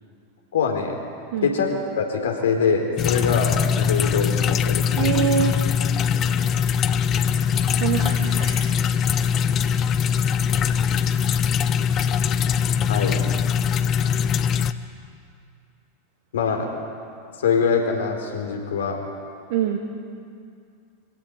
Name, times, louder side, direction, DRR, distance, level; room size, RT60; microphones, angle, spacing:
voice 1, 0.5-1.0 1.4-5.1 12.9-13.2 16.3-16.7 17.4-19.0, left 5 dB, 70° left, 3 dB, 4.0 m, -23 dB
sound 1, 3.0-14.7, left 7 dB, 35° left, 1.0 m, -22 dB
voice 2, 5.0-5.6 7.5-8.7 19.5-19.8, right 9 dB, 60° right, 1 dB, 2.5 m, -24 dB
24.5 x 16.0 x 9.5 m, 2.4 s
figure-of-eight pair, 90°, 0 cm